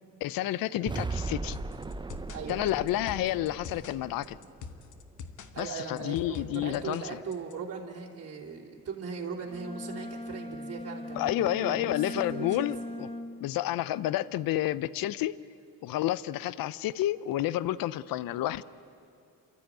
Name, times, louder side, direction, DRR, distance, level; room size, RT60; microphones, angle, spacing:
voice 1, 0.2-1.6 2.5-4.4 5.6-7.0 11.2-13.1 13.4-15.3 15.8-18.6, left 14 dB, 75° left, 18 dB, 0.6 m, -30 dB
sound 1, 0.9-5.0, right 3 dB, 15° right, 0.6 m, -38 dB
sound 2, 1.5-7.5, left 5 dB, 60° left, 1.3 m, -45 dB
voice 2, 2.3-2.8 5.5-12.7, right 5 dB, 45° right, -3 dB, 3.1 m, -39 dB
Bowed string instrument, 9.5-13.6, left 1 dB, 15° left, 1.2 m, -39 dB
29.0 x 13.0 x 9.0 m, 2.5 s
cardioid pair, 90°, 35 cm